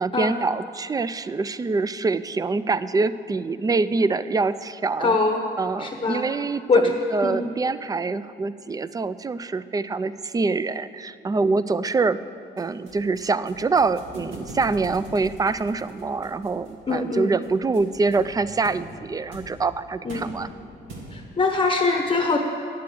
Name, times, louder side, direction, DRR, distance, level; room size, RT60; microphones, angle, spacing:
voice 1, 0.0-5.2 5.6-12.2 12.6-20.5, right 3 dB, 20° right, 16 dB, 0.3 m, -25 dB
voice 2, 5.0-5.4 5.8-6.2 6.7-6.9 7.2-7.5 16.9-17.3 20.0-20.3 21.1-22.4, left 3 dB, 25° left, 3 dB, 0.8 m, -22 dB
sound 1, 12.6-21.4, right 1 dB, 85° right, 1.9 m, -42 dB
9.5 x 7.6 x 7.6 m, 2.4 s
cardioid pair, 90°, 20 cm